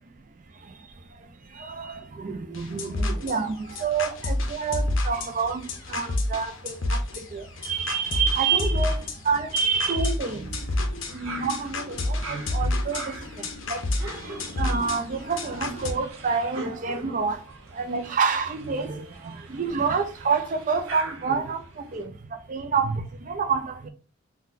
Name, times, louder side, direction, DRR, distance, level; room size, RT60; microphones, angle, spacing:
voice 1, 1.6-5.6 5.9-9.0 9.2-10.5 11.1-13.2 13.7-13.8 14.6-17.4 17.7-21.6 21.9-22.1 22.5-23.9, right 5 dB, 35° right, 0.3 m, -28 dB
sound 1, 2.5-15.9, left 2 dB, 65° left, 0.6 m, -30 dB
sound 2, 11.1-22.0, right 2 dB, 75° right, 0.7 m, -42 dB
3.9 x 2.2 x 2.4 m
head